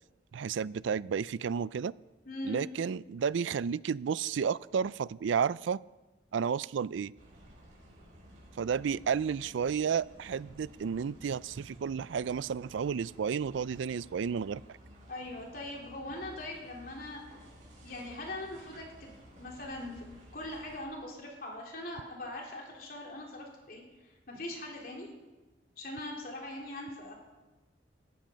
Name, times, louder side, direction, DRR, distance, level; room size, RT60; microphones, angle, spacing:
voice 1, 0.3-1.9 2.4-5.8 6.3-7.1 8.6-14.6, right 6 dB, 80° right, 20 dB, 0.4 m, -32 dB
voice 2, 2.2-2.6 15.1-17.3 17.8-25.1 25.8-27.2, left 1 dB, 50° left, -1 dB, 3.5 m, -41 dB
sound 1, 7.1-20.8, equal, 40° right, 6.5 m, -54 dB
18.0 x 13.0 x 5.2 m, 1.2 s
head